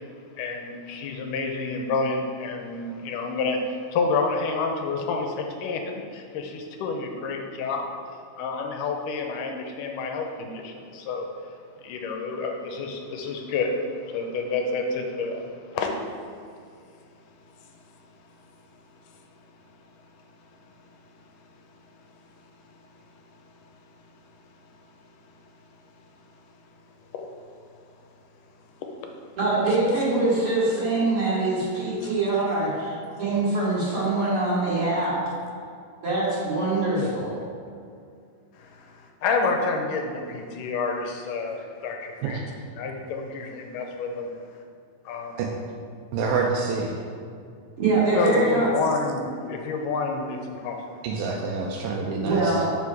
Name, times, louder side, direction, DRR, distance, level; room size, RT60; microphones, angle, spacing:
voice 1, 0.4-7.9 8.4-11.3 11.8-15.9 19.1-19.2 20.6-21.0 22.7-22.8 23.5-23.7 25.1-25.5 27.1-27.2 28.8-28.9 32.0-32.1 38.5-42.4 42.8-44.3 45.1-45.5 48.1-50.8, left 4 dB, 80° left, 3 dB, 2.1 m, -29 dB
voice 2, 29.4-32.9 33.2-35.2 36.0-37.3 47.8-48.7 52.2-52.6, right 2 dB, 45° right, -9 dB, 2.5 m, -23 dB
voice 3, 46.1-47.0 51.0-52.7, right 4 dB, 90° right, -1 dB, 2.3 m, -27 dB
6.0 x 5.5 x 4.7 m, 2.3 s
omnidirectional pair, 3.9 m